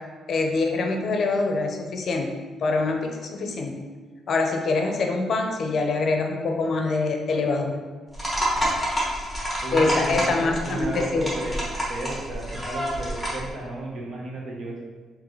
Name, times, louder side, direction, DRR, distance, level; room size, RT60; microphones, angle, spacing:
voice 1, 0.3-2.3 2.6-3.7 4.3-7.7 9.7-11.3, left 3 dB, 55° left, 3 dB, 0.5 m, -24 dB
sound 1, 8.1-13.5, equal, 5° left, 1.3 m, -28 dB
voice 2, 9.6-11.6 11.9-14.8, right 2 dB, 65° right, -2 dB, 0.9 m, -33 dB
3.8 x 3.0 x 3.1 m, 1.4 s
cardioid pair, 90°, 0 cm